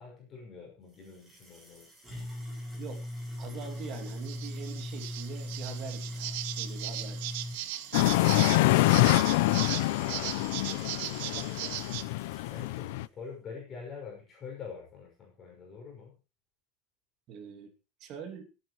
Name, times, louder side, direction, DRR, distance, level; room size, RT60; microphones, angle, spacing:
voice 1, 0.0-1.9 10.0-11.8 12.5-16.2, left 5 dB, 25° left, -2 dB, 6.2 m, -46 dB
sound 1, 0.9-13.0, left 1 dB, 5° right, 7.7 m, -42 dB
voice 2, 3.4-7.2 17.3-17.7 18.0-18.5, right 7 dB, 35° right, 6 dB, 2.5 m, -43 dB
sound 2, 3.8-12.0, right 14 dB, 75° right, 1.5 m, -38 dB
sound 3, 7.9-13.0, left 18 dB, 75° left, 0.6 m, -26 dB
26.0 x 9.3 x 3.1 m, 0.30 s
cardioid pair, 175°, 0 cm